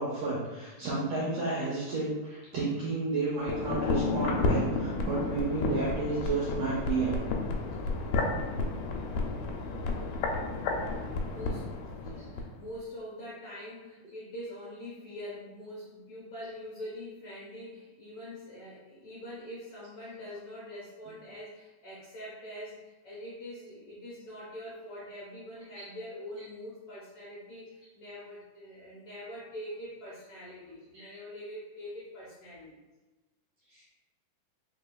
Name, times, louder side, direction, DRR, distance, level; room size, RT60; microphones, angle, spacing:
voice 1, 0.0-7.2 25.7-25.8 30.9-31.1 33.7-33.8, right 3 dB, 75° right, -7 dB, 1.4 m, -31 dB
sound 1, 3.4-12.5 12.8-12.9, left 3 dB, 85° left, 2.1 m, -31 dB
voice 2, 7.5-7.8 10.9-11.7 12.0-32.8, left 1 dB, 65° left, -8 dB, 1.4 m, -44 dB
4.5 x 3.3 x 2.2 m, 1.2 s
omnidirectional pair, 3.6 m